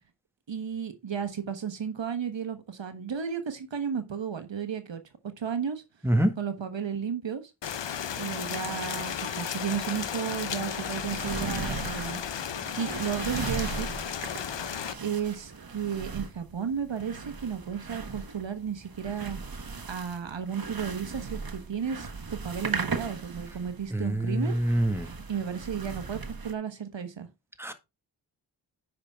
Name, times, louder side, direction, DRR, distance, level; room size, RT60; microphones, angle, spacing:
voice 1, 0.5-5.0 5.4-5.8 6.4-7.4 8.2-12.2 12.8-13.9 15.0-19.4 19.9-24.6 25.3-27.3, right 7 dB, 75° right, 1.3 m, -33 dB
Rain, 7.6-14.9, left 8 dB, 70° left, 0.9 m, -34 dB
sound 1, 10.6-26.5, right 4 dB, 50° right, 1.4 m, -38 dB
voice 2, 23.9-25.1 27.6-27.7, right 1 dB, 5° right, 1.7 m, -25 dB
9.7 x 5.9 x 3.6 m
cardioid pair, 40°, 45 cm